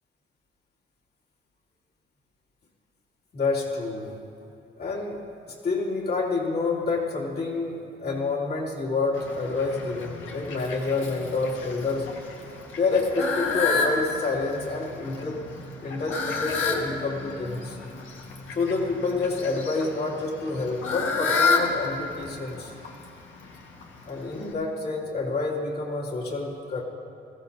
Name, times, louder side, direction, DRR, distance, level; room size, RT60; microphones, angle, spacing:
voice 1, 3.3-4.2 4.8-12.1 12.7-15.4 15.8-17.8 18.5-22.7 24.1-26.8, left 3 dB, 55° left, -3 dB, 2.8 m, -28 dB
Fowl, 9.1-24.5, left 4 dB, 80° left, 1.7 m, -31 dB
21.0 x 15.5 x 2.8 m, 2.6 s
cardioid pair, 90°, 20 cm